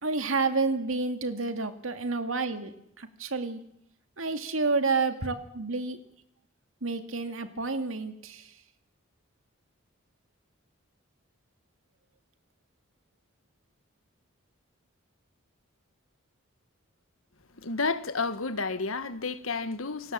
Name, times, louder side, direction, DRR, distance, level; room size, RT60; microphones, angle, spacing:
voice 1, 0.0-3.6 4.2-6.0 6.8-8.5, right 3 dB, 80° right, 2.2 m, -30 dB
voice 2, 17.6-20.1, left 4 dB, 90° left, 1.5 m, -31 dB
28.5 x 18.5 x 7.5 m
head